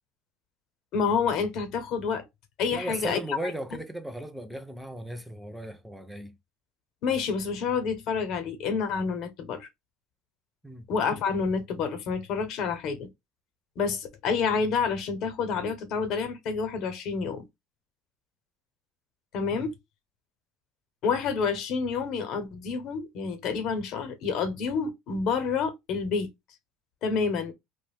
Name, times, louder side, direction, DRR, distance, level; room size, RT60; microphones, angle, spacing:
voice 1, 0.9-2.2 2.6-3.5 7.0-9.7 10.9-13.1 13.8-17.4 19.3-19.7 21.0-26.3 27.0-27.5, left 5 dB, 55° left, 0.7 m, -28 dB
voice 2, 2.7-6.3 10.6-10.9 19.5-19.7, right 1 dB, ahead, 0.5 m, -36 dB
2.4 x 2.1 x 3.3 m
cardioid pair, 130°, 0 cm